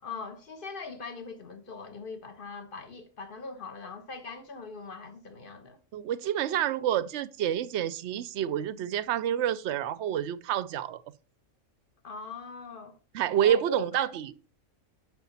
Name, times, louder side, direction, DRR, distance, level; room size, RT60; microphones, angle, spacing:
voice 1, 0.0-5.8 12.0-12.9 13.4-14.0, left 3 dB, 40° left, 1.3 m, -41 dB
voice 2, 5.9-11.0 13.1-14.5, right 10 dB, 65° right, 0.8 m, -28 dB
8.3 x 6.3 x 4.0 m
omnidirectional pair, 1.4 m